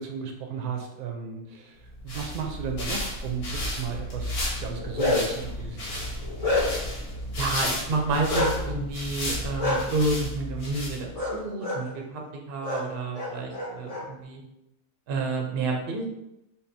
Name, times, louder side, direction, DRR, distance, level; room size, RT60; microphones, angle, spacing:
voice 1, 0.0-6.1, right 6 dB, 80° right, 2 dB, 1.1 m, -35 dB
sound 1, 1.8-11.3, left 1 dB, 80° left, 1.5 m, -33 dB
Bark, 4.6-5.4 5.9-6.9 8.3-8.5 9.6-9.8 11.1-11.3 11.6-11.8 12.6-12.8 13.1-14.0, left 2 dB, 35° left, 0.7 m, -27 dB
voice 2, 7.4-12.2 12.5-14.4 15.1-16.1, right 3 dB, 50° right, 1 dB, 0.7 m, -29 dB
5.3 x 2.3 x 2.6 m, 0.86 s
omnidirectional pair, 1.6 m